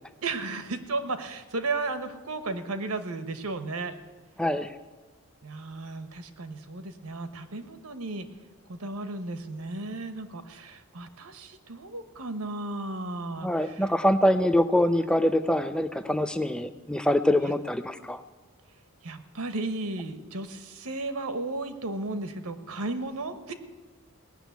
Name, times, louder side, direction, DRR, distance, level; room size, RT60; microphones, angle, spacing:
voice 1, 0.2-3.9 5.4-8.3 8.7-13.9 17.3-17.5 19.0-23.5, right 2 dB, 85° right, 9 dB, 1.2 m, -34 dB
voice 2, 4.4-4.7 13.4-18.2, left 1 dB, 5° left, 10 dB, 0.5 m, -24 dB
18.0 x 6.6 x 9.3 m, 1.3 s
head